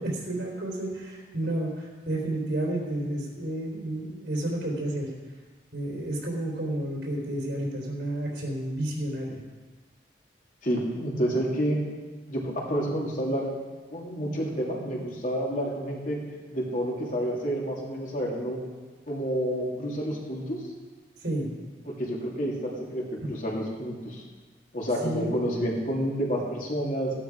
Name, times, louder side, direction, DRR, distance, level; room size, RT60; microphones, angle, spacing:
voice 1, 0.0-5.1 5.7-9.4 21.2-21.5 23.2-23.3 25.0-25.4, right 1 dB, 75° right, -3 dB, 3.8 m, -31 dB
voice 2, 10.6-11.8 12.3-13.5 13.9-16.2 16.5-18.6 19.1-20.6 21.8-24.2 24.7-27.1, equal, 45° left, -3 dB, 3.0 m, -29 dB
15.0 x 11.5 x 4.9 m, 1.3 s
head